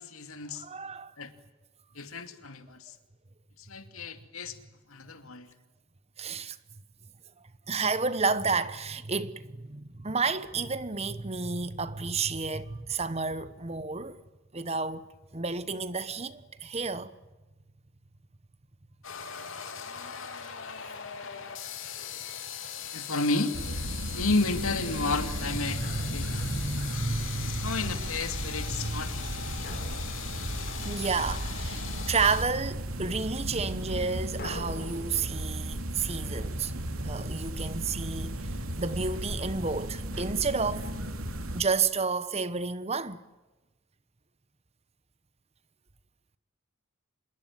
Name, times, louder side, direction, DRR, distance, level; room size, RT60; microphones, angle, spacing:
voice 1, 0.0-0.7 1.2-1.3 1.9-2.9 3.6-4.6 4.9-5.5 22.9-23.6 24.1-25.8 26.1-26.5 27.5-29.1 29.4-29.7, left 3 dB, 90° left, 2.6 m, -32 dB
voice 2, 0.5-1.1 6.2-6.6 7.7-14.2 14.5-15.1 15.3-17.1 19.4-19.5 25.7-27.8 28.7-29.1 30.0-30.1 30.8-36.7 37.0-38.5 38.8-40.9 41.5-43.2, right 4 dB, 30° right, 1.1 m, -31 dB
sound 1, 19.0-32.4, left 8 dB, 70° left, 3.2 m, -40 dB
Drum, 19.3-20.0 22.0-23.1 25.8-27.0 29.6-31.3 34.4-37.4, left 2 dB, 45° left, 4.2 m, -48 dB
sound 2, 23.5-41.6, right 1 dB, 85° right, 2.7 m, -35 dB
26.0 x 22.0 x 9.2 m
head